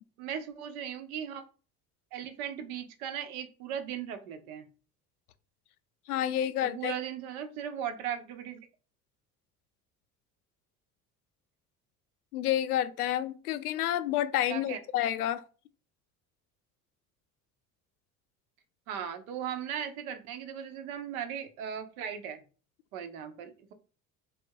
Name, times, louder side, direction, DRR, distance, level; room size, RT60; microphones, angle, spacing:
voice 1, 0.2-1.4 2.1-4.7 6.6-8.7 14.5-14.8 18.9-22.4 22.9-23.7, right 9 dB, 70° right, 0.9 m, -37 dB
voice 2, 6.1-6.9 12.3-15.4, left 11 dB, 80° left, 0.6 m, -29 dB
3.2 x 3.0 x 4.6 m
figure-of-eight pair, 60°, 44 cm